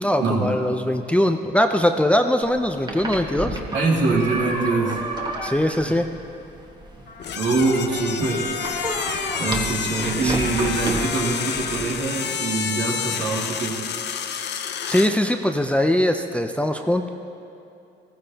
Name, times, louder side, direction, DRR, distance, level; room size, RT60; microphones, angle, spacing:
voice 1, 0.0-3.6 5.4-6.1 10.2-10.4 14.9-17.1, left 1 dB, 5° left, 5 dB, 0.5 m, -21 dB
sound 1, 2.4-12.0, right 1 dB, 20° right, 1.5 m, -32 dB
voice 2, 3.7-5.0 5.9-6.0 7.3-8.5 9.4-13.8, right 3 dB, 70° right, -3 dB, 2.4 m, -23 dB
Trumpet, 7.1-13.3, left 4 dB, 45° left, 1.3 m, -36 dB
sound 2, 7.2-15.2, left 8 dB, 60° left, 0.7 m, -29 dB
15.5 x 14.5 x 2.9 m, 2.7 s
cardioid pair, 90°, 20 cm